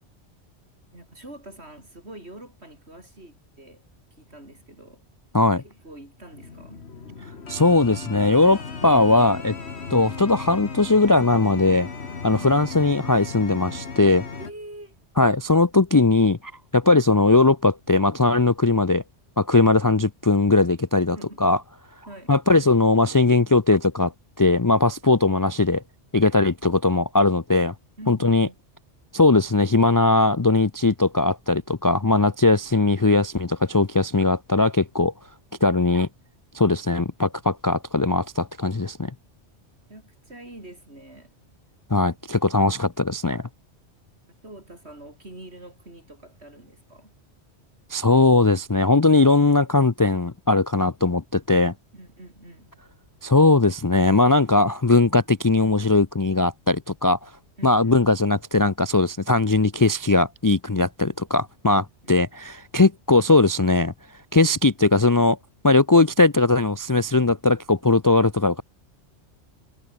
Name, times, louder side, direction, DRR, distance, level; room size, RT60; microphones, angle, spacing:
voice 1, 0.9-3.8 4.1-5.0 5.6-6.9 12.3-12.6 14.3-15.0 21.1-21.4 22.1-22.3 28.0-28.6 39.9-41.3 44.4-47.1 51.9-52.8 57.6-58.0 62.0-62.1, right 1 dB, 65° right, 7.6 m, -44 dB
sound 1, 6.3-14.5, left 5 dB, 65° left, 2.1 m, -36 dB
voice 2, 7.5-9.5 9.9-11.9 12.2-14.2 15.2-16.4 16.7-19.0 19.4-21.2 21.4-21.6 22.3-24.1 24.4-25.8 26.1-27.7 28.1-28.5 29.1-35.1 35.6-36.1 36.5-39.1 41.9-43.4 47.9-51.7 53.2-57.2 57.6-63.9 64.3-65.4 65.6-68.6, left 3 dB, 25° left, 0.4 m, -19 dB
omnidirectional pair, 1.2 m